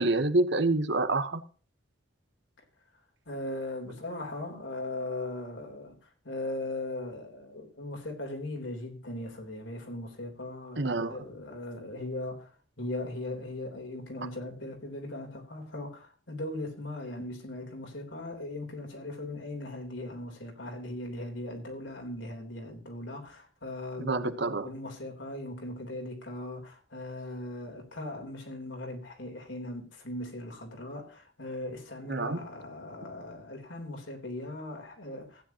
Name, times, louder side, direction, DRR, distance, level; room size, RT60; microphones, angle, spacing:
voice 1, 0.0-1.4 10.8-11.2 24.0-24.7 32.1-32.4, right 2 dB, 65° right, 1.0 m, -27 dB
voice 2, 3.3-6.0 6.2-10.8 11.1-12.5 12.8-35.4, left 1 dB, 75° left, 3.6 m, -39 dB
15.5 x 10.0 x 2.9 m
head